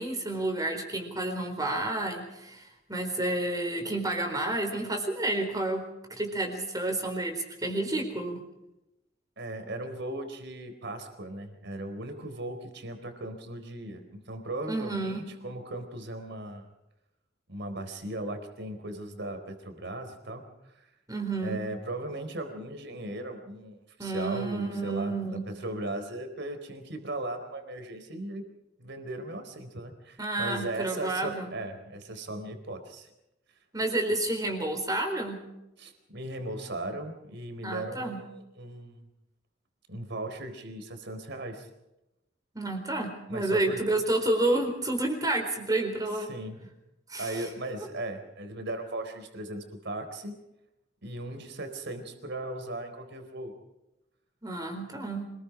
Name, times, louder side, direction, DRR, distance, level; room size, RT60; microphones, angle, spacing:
voice 1, 0.0-2.6 2.9-5.8 6.2-8.4 14.7-15.2 21.1-21.6 24.0-25.4 30.2-31.5 33.7-35.4 37.6-38.2 42.5-46.3 47.1-47.4 54.4-55.3, right 2 dB, 20° right, 3 dB, 4.3 m, -30 dB
voice 2, 9.4-16.7 17.5-20.9 21.4-28.4 28.8-33.1 35.8-39.1 39.9-41.7 43.3-43.8 46.3-46.7 47.2-50.4 51.0-53.5, right 1 dB, 60° right, 7 dB, 4.2 m, -37 dB
26.5 x 21.0 x 5.1 m, 0.92 s
head